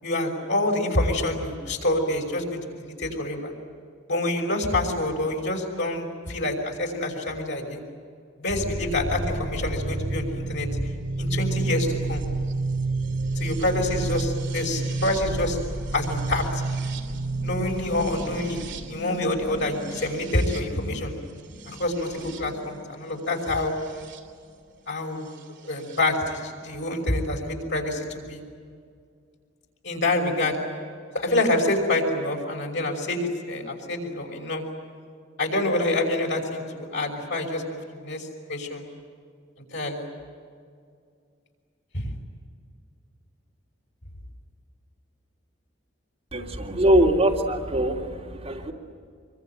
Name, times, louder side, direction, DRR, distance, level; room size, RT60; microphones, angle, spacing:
voice 1, 0.0-3.5 4.1-7.8 8.4-10.8 11.2-12.2 13.4-15.6 15.9-16.6 17.4-21.1 21.7-23.7 24.9-25.3 25.7-28.4 29.8-30.6 31.1-34.6 35.4-38.8 39.7-40.1 41.9-42.1, left 2 dB, 65° left, 1 dB, 5.9 m, -27 dB
sound 1, 8.5-24.2 25.4-26.0, right 2 dB, 65° right, 2.9 m, -31 dB
voice 2, 46.3-48.7, right 1 dB, 30° right, -2 dB, 3.2 m, -22 dB
25.5 x 24.0 x 9.2 m, 2.2 s
head